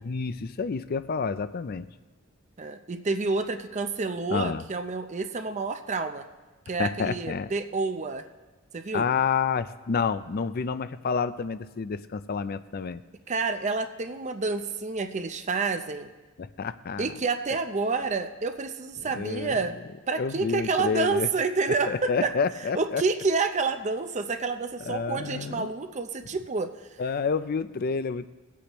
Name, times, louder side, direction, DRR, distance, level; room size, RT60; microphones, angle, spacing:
voice 1, 0.0-1.9 4.3-4.6 6.8-7.5 8.9-13.0 16.4-17.1 19.1-19.7 20.1-21.3 21.9-23.0 24.9-25.7 27.0-28.3, left 5 dB, 45° left, 14 dB, 0.4 m, -29 dB
voice 2, 2.6-6.3 6.7-8.2 8.7-9.1 13.3-16.1 17.0-19.7 20.1-22.3 22.7-26.7, right 4 dB, 35° right, 8 dB, 0.6 m, -29 dB
19.5 x 8.3 x 3.0 m, 1.2 s
head